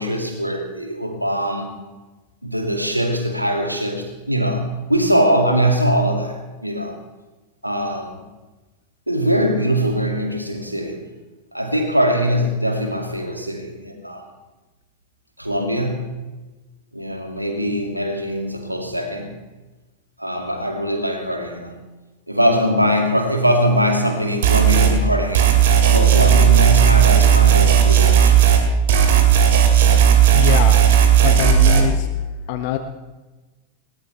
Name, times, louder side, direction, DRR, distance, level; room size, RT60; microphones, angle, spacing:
voice 1, 0.0-1.8 2.4-7.0 7.6-8.2 9.1-11.0 11.5-14.3 15.4-16.1 16.9-19.4 20.2-21.8 22.3-28.4, equal, 90° right, 3 dB, 2.4 m, -22 dB
sound 1, 24.4-24.9 25.3-28.6 28.9-31.8, right 9 dB, 55° right, 2.5 m, -13 dB
voice 2, 30.3-30.8 31.2-32.1 32.5-32.8, left 11 dB, 50° left, 9 dB, 1.0 m, -24 dB
20.5 x 19.0 x 3.4 m, 1.2 s
figure-of-eight pair, 90°, 0 cm